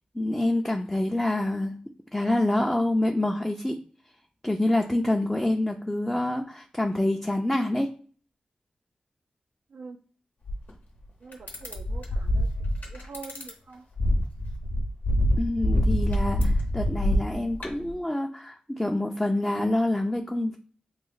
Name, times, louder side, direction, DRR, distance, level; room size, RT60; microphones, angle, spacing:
voice 1, 0.1-1.8 2.1-3.8 4.4-7.9 15.4-20.6, left 1 dB, 10° left, 1 dB, 0.4 m, -26 dB
sound 1, 10.5-10.7 11.3-13.5 14.0-17.9, equal, 75° left, 0.8 m, -25 dB
voice 2, 11.2-12.5 12.8-13.8, right 4 dB, 90° right, 3 dB, 0.4 m, -44 dB
3.1 x 2.0 x 3.9 m, 0.42 s
cardioid pair, 50°, 3 cm